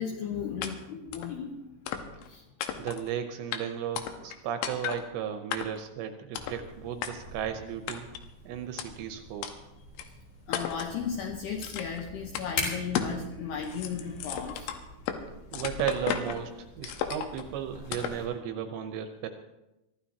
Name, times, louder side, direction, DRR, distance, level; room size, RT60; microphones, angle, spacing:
voice 1, 0.0-1.6 2.2-2.4 10.5-15.1, left 6 dB, 70° left, 1 dB, 2.7 m, -35 dB
sound 1, 0.6-0.7 1.1-1.3 1.9-2.3 2.6-3.1 3.5-3.6 4.0-4.4 4.6-5.0 5.5-5.9 6.3-6.6 7.0-7.1 7.9-8.2 8.8-8.9 9.4-9.5 10.0-10.1 10.5-10.9 11.6-12.0 12.3-12.5 12.9-13.2 13.5-15.2 15.5-16.4 16.8-17.4 17.9-18.2, left 9 dB, 90° left, 3.7 m, -34 dB
voice 2, 2.8-8.1 8.5-9.5 15.5-19.3, right 9 dB, 75° right, 7 dB, 2.8 m, -35 dB
sound 2, 6.4-18.2, left 3 dB, 50° left, 5.3 m, -44 dB
23.5 x 15.0 x 2.8 m, 0.97 s
omnidirectional pair, 5.6 m